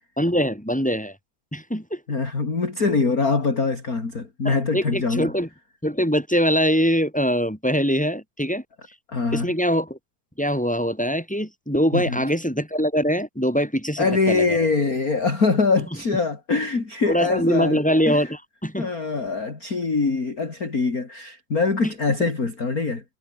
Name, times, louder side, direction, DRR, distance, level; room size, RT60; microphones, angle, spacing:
voice 1, 0.2-1.2 1.5-2.0 4.4-5.5 5.8-8.6 9.3-10.0 10.4-14.7 17.1-18.9 22.2-22.3, equal, ahead, 7.7 m, -23 dB
voice 2, 2.1-5.3 9.1-9.5 11.9-12.2 14.0-17.8 18.1-18.2 18.8-23.0, left 4 dB, 30° left, 3.6 m, -23 dB
omnidirectional pair, 3.5 m